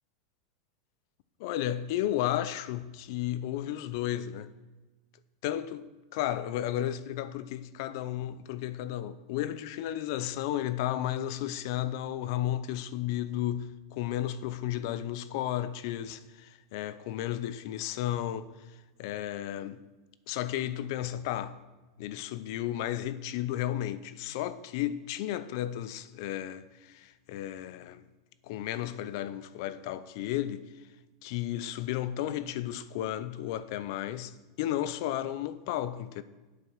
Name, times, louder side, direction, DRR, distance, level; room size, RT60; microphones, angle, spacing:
voice 1, 1.4-4.5 5.4-19.8 20.3-21.6 22.0-28.0 28.4-30.7 31.2-36.2, left 12 dB, 60° left, 0.6 m, -33 dB
8.3 x 7.0 x 6.2 m
hypercardioid pair, 110°, 2 cm